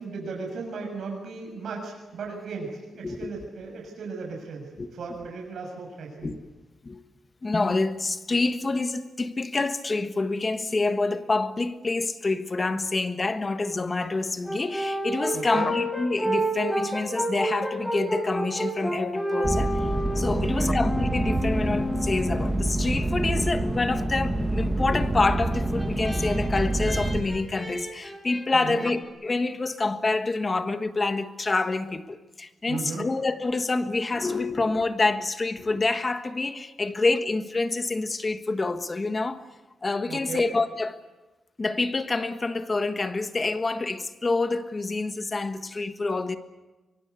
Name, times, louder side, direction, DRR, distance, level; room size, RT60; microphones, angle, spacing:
voice 1, 0.0-6.3 15.3-15.7 20.4-20.8 28.5-28.9 32.7-33.0 40.1-40.5, right 4 dB, 70° right, 6.9 m, -36 dB
voice 2, 7.4-19.7 20.1-39.4 39.8-41.0 41.6-46.4, left 3 dB, 25° left, 1.4 m, -27 dB
Brass instrument, 14.4-22.8 25.3-28.9, equal, 5° left, 5.3 m, -30 dB
sound 1, 19.4-27.2, right 1 dB, 10° right, 2.3 m, -27 dB
24.0 x 23.5 x 8.4 m
wide cardioid pair, 150°, 0 cm